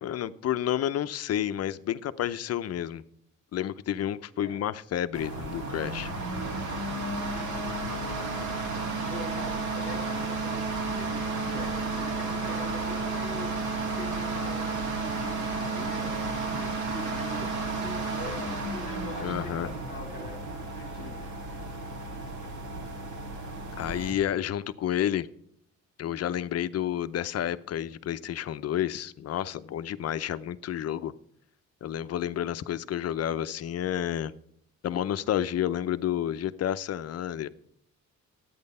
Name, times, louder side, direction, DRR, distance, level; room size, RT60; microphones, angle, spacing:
voice 1, 0.0-3.0 3.5-6.1 19.2-19.7 23.8-25.3 26.0-31.1 31.8-34.3 34.8-37.5, left 11 dB, 55° left, 14 dB, 0.7 m, -30 dB
voice 2, 4.4-4.7 9.1-13.5 14.0-21.2, left 3 dB, 35° left, 2 dB, 1.6 m, -44 dB
sound 1, 5.1-24.1, right 3 dB, 70° right, 3.4 m, -32 dB
13.0 x 9.5 x 5.4 m, 0.68 s
cardioid pair, 160°, 31 cm